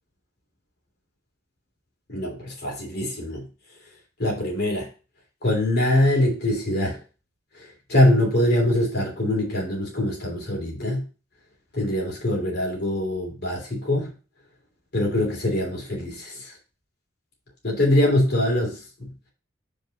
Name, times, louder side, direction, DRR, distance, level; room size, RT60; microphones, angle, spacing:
voice 1, 2.1-3.4 4.2-4.9 5.4-7.0 7.9-11.1 11.7-14.1 14.9-16.5 17.6-18.8, left 1 dB, 55° left, 2.9 m, -23 dB
5.5 x 4.6 x 5.0 m
head